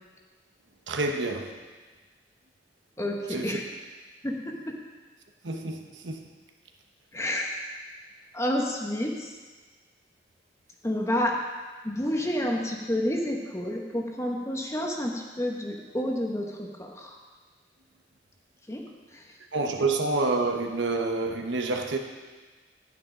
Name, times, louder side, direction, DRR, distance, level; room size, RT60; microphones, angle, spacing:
voice 1, 0.9-1.5 3.3-3.6 5.4-6.2 19.5-22.0, right 3 dB, 80° right, 4 dB, 1.0 m, -28 dB
voice 2, 3.0-3.6 4.2-4.7 7.1-7.5 8.3-9.3 10.8-11.4 11.8-17.2 18.7-19.3, left 1 dB, 15° left, 1 dB, 1.0 m, -29 dB
11.0 x 9.5 x 3.8 m, 1.4 s
head